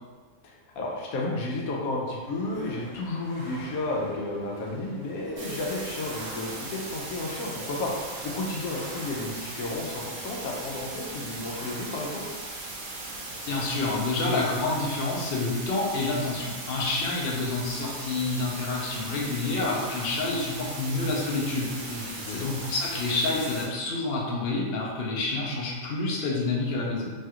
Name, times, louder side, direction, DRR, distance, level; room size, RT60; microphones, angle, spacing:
voice 1, 0.8-7.9 8.2-12.2 21.8-22.5, left 2 dB, 85° left, -2 dB, 1.1 m, -32 dB
sound 1, 2.3-14.8, equal, 35° right, 0.6 m, -46 dB
sound 2, 5.4-23.7, right 2 dB, 85° right, 1.2 m, -38 dB
voice 2, 13.4-27.1, left 3 dB, 55° left, -3 dB, 0.7 m, -28 dB
3.2 x 2.4 x 2.8 m, 1.4 s
omnidirectional pair, 1.5 m